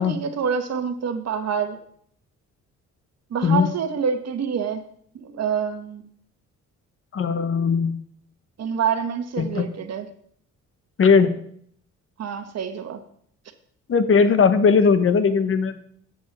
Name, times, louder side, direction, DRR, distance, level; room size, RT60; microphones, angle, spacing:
voice 1, 0.0-1.8 3.3-4.8 5.1-6.0 8.6-10.1 12.2-13.0, right 7 dB, 60° right, 8 dB, 1.3 m, -26 dB
voice 2, 7.1-8.0 9.4-9.7 11.0-11.3 13.9-15.8, left 5 dB, 45° left, 11 dB, 1.1 m, -18 dB
8.3 x 6.3 x 7.3 m, 0.65 s
cardioid pair, 90°, 30 cm